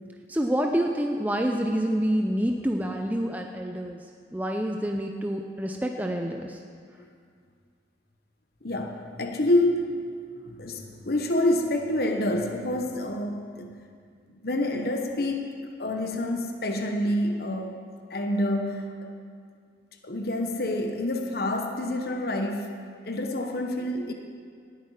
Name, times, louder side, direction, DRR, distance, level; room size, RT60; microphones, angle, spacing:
voice 1, 0.3-4.0 4.3-6.6, equal, 10° right, 3 dB, 0.5 m, -27 dB
voice 2, 8.6-10.0 10.4-13.8 14.4-15.5 15.8-17.8 18.1-19.1 20.0-22.8 23.0-24.1, left 1 dB, 55° left, 3 dB, 1.1 m, -27 dB
19.0 x 8.7 x 4.9 m, 2.1 s
head